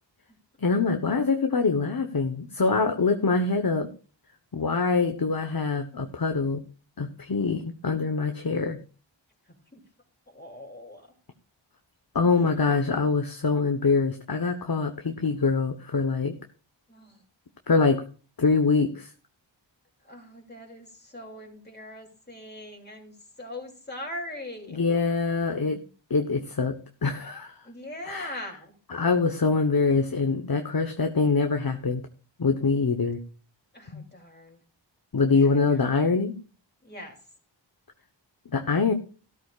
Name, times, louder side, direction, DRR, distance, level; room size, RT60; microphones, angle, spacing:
voice 1, 0.6-3.9 4.5-6.6 7.0-8.8 12.1-16.3 17.7-18.0 18.4-19.1 24.7-25.8 26.1-26.7 27.0-27.5 28.1-28.4 28.9-32.0 32.4-33.2 33.9-34.0 35.1-36.3 38.5-38.9, left 4 dB, 50° left, 6 dB, 1.1 m, -24 dB
voice 2, 10.3-11.1 16.9-17.2 20.0-24.8 27.6-28.7 33.7-34.6 35.4-35.8 36.8-37.2, left 1 dB, 20° left, 0 dB, 3.1 m, -41 dB
14.0 x 13.0 x 2.4 m, 0.37 s
wide cardioid pair, 50°, 46 cm